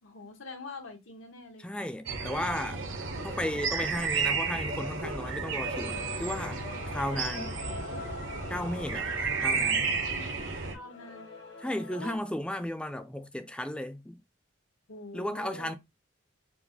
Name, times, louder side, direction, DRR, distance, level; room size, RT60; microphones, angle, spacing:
voice 1, 0.0-1.7 10.1-10.3 10.7-11.3 11.9-12.2 14.9-15.8, left 2 dB, 85° left, 1.3 m, -44 dB
voice 2, 1.6-2.8 3.2-6.6 6.9-7.6 8.5-9.1 9.4-10.0 11.6-14.2 15.1-15.7, left 1 dB, 5° left, 0.4 m, -34 dB
sound 1, 2.0-10.7, right 4 dB, 75° right, 1.1 m, -32 dB
Male singing / Female singing / Musical instrument, 5.6-12.2, left 4 dB, 60° left, 1.2 m, -44 dB
4.6 x 2.2 x 3.9 m
head